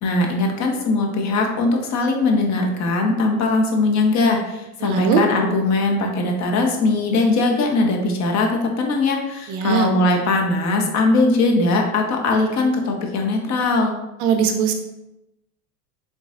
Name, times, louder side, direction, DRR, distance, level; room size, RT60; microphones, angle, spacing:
voice 1, 0.0-8.5 8.8-13.9, left 3 dB, 40° left, 2 dB, 0.9 m, -20 dB
voice 2, 4.8-5.2 9.5-9.9 14.2-14.7, right 7 dB, 45° right, 5 dB, 0.5 m, -20 dB
6.7 x 2.4 x 2.5 m, 0.93 s
hypercardioid pair, 80°, 44 cm